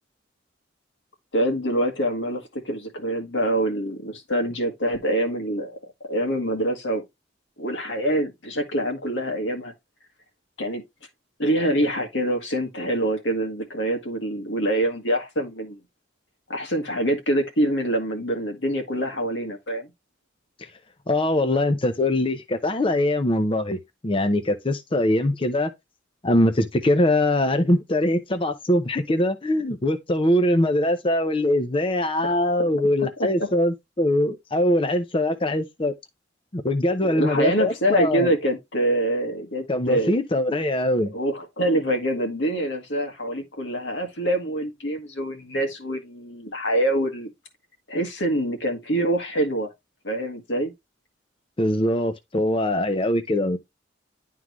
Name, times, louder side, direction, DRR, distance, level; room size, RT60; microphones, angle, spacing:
voice 1, 1.3-5.8 6.1-7.0 7.6-9.7 10.6-10.8 11.4-15.8 16.5-19.9 32.2-32.7 33.2-33.5 37.0-40.2 41.1-47.3 47.9-49.7 50.0-50.7, right 1 dB, 80° left, 1.9 m, -25 dB
voice 2, 21.1-25.7 26.2-35.9 36.5-38.3 39.7-41.1 51.6-53.6, left 1 dB, 30° left, 0.7 m, -22 dB
11.0 x 3.7 x 3.1 m
head